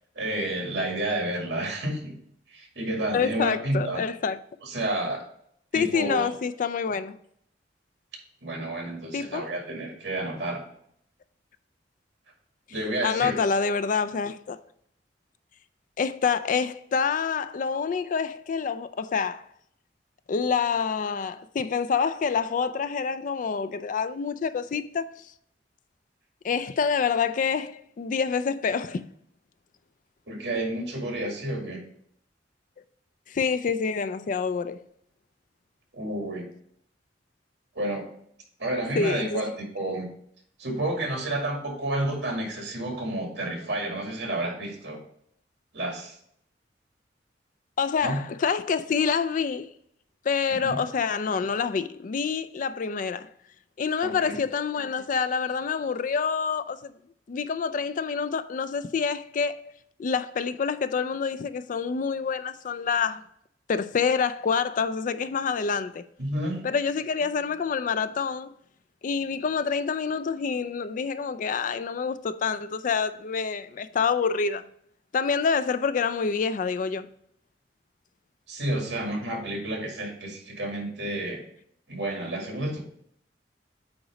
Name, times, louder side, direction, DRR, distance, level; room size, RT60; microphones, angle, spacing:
voice 1, 0.2-2.1 2.5-4.0 4.6-5.2 5.7-6.3 8.4-10.6 12.7-13.3 30.3-31.8 35.9-36.5 37.7-38.1 38.6-39.5 39.7-40.1 40.6-45.0 45.7-46.2 48.0-48.2 50.6-50.8 54.0-54.4 66.2-66.6 78.5-81.4 81.9-82.8, right 1 dB, 70° right, 2.2 m, -30 dB
voice 2, 3.1-4.4 5.7-7.2 9.1-9.5 13.0-14.6 16.0-19.5 20.3-25.1 26.4-29.0 33.3-34.8 39.0-39.4 47.8-49.7 50.2-53.3 53.8-56.9 57.3-59.6 60.0-63.2 63.7-66.0 66.6-68.5 69.0-74.6 75.1-77.1, left 5 dB, 45° left, 0.4 m, -27 dB
8.6 x 3.1 x 5.0 m
head